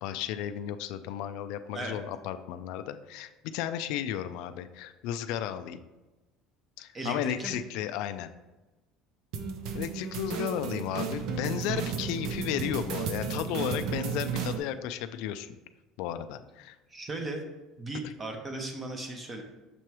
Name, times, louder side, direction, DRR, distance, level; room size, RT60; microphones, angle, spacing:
voice 1, 0.0-5.8 6.8-8.3 9.7-15.6 16.0-16.8 18.0-18.1, left 10 dB, 65° left, 10 dB, 0.3 m, -34 dB
voice 2, 6.9-7.6 16.9-17.4 17.8-19.4, right 2 dB, 20° right, 3 dB, 0.8 m, -36 dB
sound 1, 9.3-14.6, right 6 dB, 60° right, 0.6 m, -33 dB
6.8 x 3.0 x 4.7 m, 1.1 s
cardioid pair, 165°, 0 cm